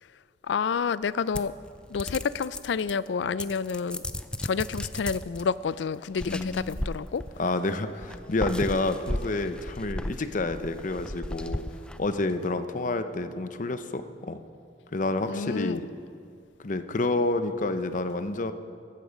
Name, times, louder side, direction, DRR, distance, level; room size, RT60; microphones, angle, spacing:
voice 1, 0.5-1.5 1.9-4.0 4.4-7.2 15.2-15.8, left 6 dB, 90° left, 18 dB, 0.4 m, -29 dB
sound 1, 1.3-3.1 3.4-5.4 6.1-7.5 8.0-12.3, left 1 dB, 5° left, 0.4 m, -35 dB
voice 2, 6.3-6.8 7.4-11.6 12.0-14.4 14.9-15.8 16.6-18.5, left 2 dB, 45° left, 10 dB, 0.7 m, -29 dB
15.0 x 13.5 x 5.2 m, 2.3 s
head